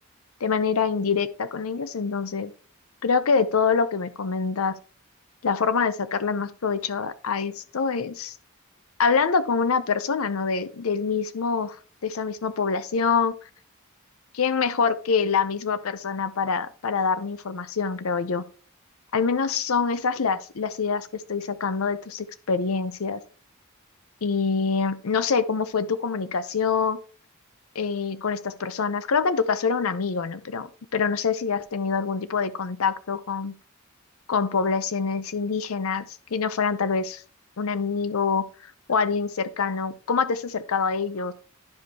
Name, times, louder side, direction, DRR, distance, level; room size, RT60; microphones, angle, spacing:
voice 1, 0.4-2.5 3.0-4.7 5.4-8.3 9.0-11.8 12.0-13.3 14.3-18.4 19.1-23.2 24.2-27.0 27.7-33.5 34.3-36.1 36.3-37.2 37.6-38.5 38.9-41.3, left 5 dB, 90° left, 0.6 m, -25 dB
11.5 x 5.2 x 2.8 m
head